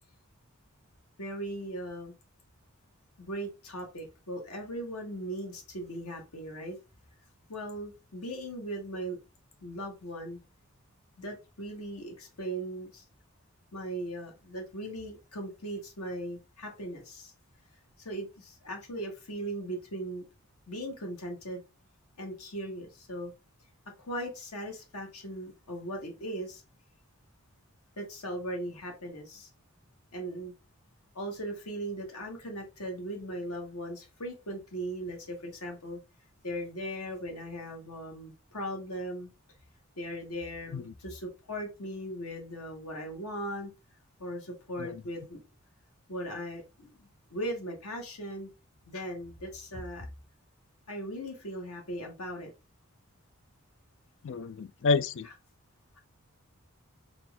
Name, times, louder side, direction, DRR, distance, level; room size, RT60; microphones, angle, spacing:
voice 1, 1.2-2.1 3.2-6.8 7.5-9.2 9.6-10.4 11.2-13.0 13.7-17.3 18.0-20.2 20.7-21.6 22.2-23.3 24.1-26.6 28.0-29.5 30.1-30.5 31.1-36.0 36.4-39.3 40.0-43.7 44.2-45.4 46.1-48.5 48.9-50.1 50.9-52.5, right 1 dB, 90° left, 1.4 m, -38 dB
voice 2, 54.2-55.3, left 4 dB, 60° left, 0.3 m, -29 dB
4.3 x 2.5 x 3.3 m
head